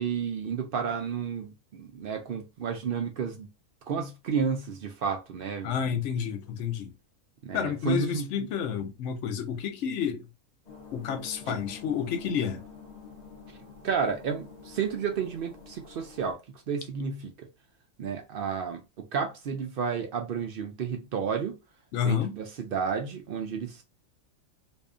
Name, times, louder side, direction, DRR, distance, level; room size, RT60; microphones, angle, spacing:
voice 1, 0.0-3.5 3.9-5.9 7.4-8.5 11.5-11.6 13.8-16.4 16.7-17.5 18.0-21.6 22.0-23.8, right 6 dB, 70° right, 0.5 m, -31 dB
voice 2, 5.6-6.9 7.5-10.3 10.9-12.6 21.9-22.3, left 8 dB, 70° left, 0.8 m, -30 dB
sound 1, 10.7-16.3, left 5 dB, 45° left, 0.5 m, -48 dB
2.7 x 2.3 x 2.3 m
omnidirectional pair, 1.4 m